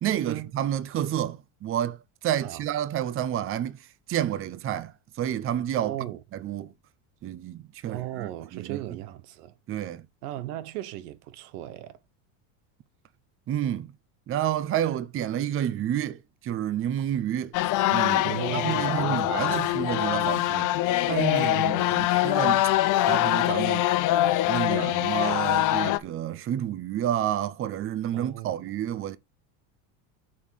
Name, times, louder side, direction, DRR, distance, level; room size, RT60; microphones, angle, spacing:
voice 1, 0.0-5.9 6.4-6.7 7.2-8.8 9.7-10.1 13.5-13.9 14.3-17.5 17.9-20.7 21.1-22.7 23.1-23.8 24.4-29.2, right 11 dB, 30° right, 0.7 m, -30 dB
voice 2, 5.8-6.2 7.8-9.5 10.2-12.0 18.2-19.6 20.2-20.4 21.5-22.0 28.1-28.7, right 14 dB, 85° right, 1.1 m, -36 dB
Monks of Wat Sensaikharam - Laos, 17.5-26.0, left 15 dB, 45° left, 0.7 m, -24 dB
8.6 x 3.8 x 6.2 m
cardioid pair, 140°, 44 cm